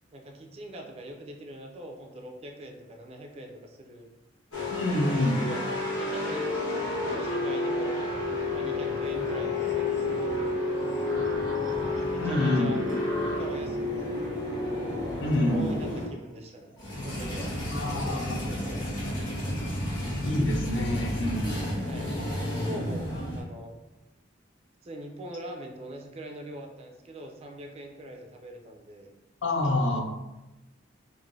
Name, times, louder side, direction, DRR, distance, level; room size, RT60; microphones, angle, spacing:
voice 1, 0.1-4.1 5.1-8.0 8.5-10.2 12.1-12.8 13.2-14.1 14.9-16.7 17.0-17.5 17.9-18.9 21.8-22.2 22.6-23.8 24.8-29.1, right 1 dB, 35° right, 2 dB, 0.4 m, -42 dB
sound 1, 4.5-16.1 16.8-23.4, left 2 dB, 85° left, 1.2 m, -30 dB
voice 2, 4.7-5.4 12.2-12.7 15.2-15.7 17.7-18.6 20.2-21.6 29.4-30.0, left 1 dB, 70° left, 2 dB, 0.5 m, -27 dB
sound 2, 9.0-17.2, equal, 15° left, 0.7 m, -45 dB
3.1 x 2.5 x 2.6 m, 1.0 s
head